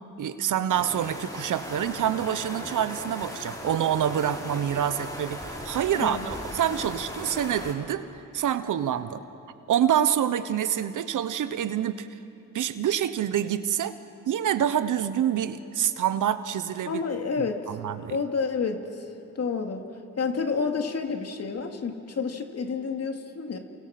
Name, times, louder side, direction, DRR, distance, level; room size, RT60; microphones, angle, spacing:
voice 1, 0.2-8.0 8.3-9.2 9.7-12.1 12.5-14.0 14.3-17.0 17.4-18.2, right 10 dB, 70° right, 12 dB, 1.1 m, -27 dB
sound 1, 0.7-7.7, left 1 dB, 10° left, 5.4 m, -38 dB
voice 2, 5.9-6.3 16.9-17.7 18.1-19.1 19.3-19.8 20.2-23.6, left 5 dB, 50° left, 4 dB, 2.6 m, -29 dB
29.0 x 29.0 x 6.1 m, 2.8 s
cardioid pair, 70°, 32 cm